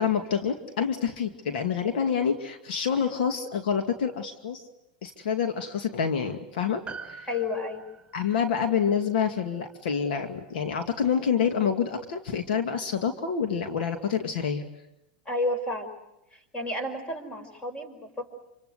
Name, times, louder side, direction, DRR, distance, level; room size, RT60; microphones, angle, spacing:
voice 1, 0.0-4.6 5.0-7.3 8.1-14.6, left 7 dB, 75° left, 6 dB, 2.4 m, -27 dB
Piano, 6.8-11.5 11.7-11.8, right 5 dB, 10° right, 4.0 m, -47 dB
voice 2, 7.3-7.8 15.3-15.9 16.3-18.3, left 2 dB, 20° left, 9 dB, 5.5 m, -31 dB
27.5 x 25.5 x 8.2 m, 0.88 s
hypercardioid pair, 120°, 5 cm